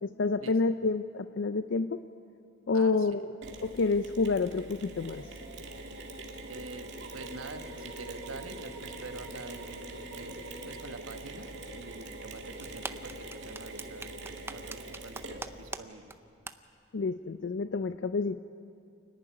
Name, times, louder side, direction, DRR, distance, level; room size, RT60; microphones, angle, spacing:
voice 1, 0.0-2.0 2.7-3.3 3.6-5.3 16.9-18.4, left 4 dB, 60° left, 10 dB, 0.5 m, -29 dB
voice 2, 2.7-3.3 6.5-14.2 14.5-16.1, right 3 dB, 90° right, 7 dB, 1.3 m, -46 dB
Mechanisms, 3.4-15.7, right 2 dB, 60° right, 2.0 m, -43 dB
sound 1, 12.6-15.8 16.1-16.2 16.5-16.6, right 3 dB, 10° right, 0.6 m, -39 dB
29.0 x 11.0 x 9.8 m, 2.5 s
head